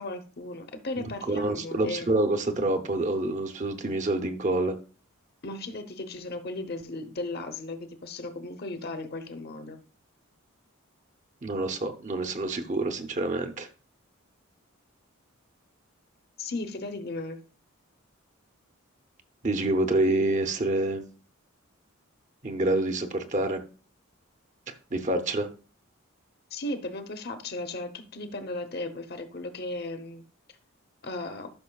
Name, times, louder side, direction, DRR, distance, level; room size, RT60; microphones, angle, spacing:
voice 1, 0.0-2.1 5.4-9.8 16.4-17.4 26.5-30.2 31.0-31.5, left 2 dB, 45° left, 0.9 m, -36 dB
voice 2, 1.1-4.8 11.4-13.7 19.4-21.1 22.4-23.6 24.7-25.5, right 2 dB, 35° right, 0.7 m, -27 dB
12.5 x 6.1 x 2.3 m
head